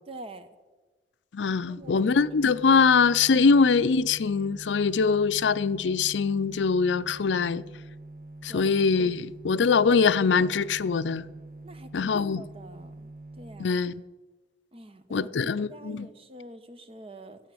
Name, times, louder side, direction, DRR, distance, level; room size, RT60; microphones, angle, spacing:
voice 1, 0.1-0.5 1.4-2.0 8.5-8.7 11.6-13.8 14.7-17.4, right 1 dB, 35° right, 1.0 m, -46 dB
voice 2, 1.3-7.6 8.4-11.3 11.9-12.4 13.6-13.9 15.1-16.1, left 5 dB, 90° left, 0.5 m, -23 dB
sound 1, 1.8-13.7, right 2 dB, 55° right, 1.4 m, -45 dB
13.5 x 9.1 x 7.7 m
head